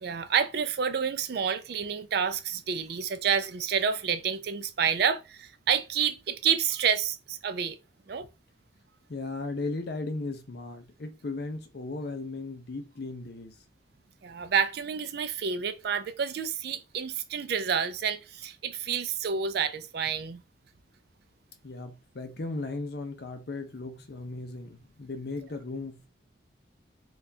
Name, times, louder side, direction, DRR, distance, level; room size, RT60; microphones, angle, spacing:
voice 1, 0.0-7.8 8.1-8.3 14.2-20.4, right 7 dB, 55° right, 0.4 m, -29 dB
voice 2, 9.1-13.5 21.6-26.1, left 3 dB, 55° left, 0.6 m, -36 dB
4.0 x 2.4 x 2.7 m
head